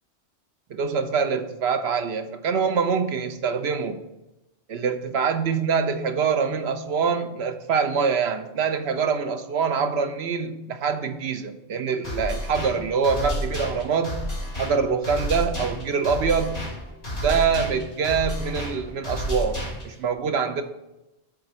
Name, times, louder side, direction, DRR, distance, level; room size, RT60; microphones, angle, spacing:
voice 1, 0.7-4.0 4.7-14.3 14.6-16.7 17.1-20.6, right 6 dB, 70° right, 8 dB, 1.0 m, -25 dB
sound 1, 12.0-20.0, equal, 65° left, 3.5 m, -31 dB
7.4 x 3.8 x 6.3 m, 0.93 s
omnidirectional pair, 1.1 m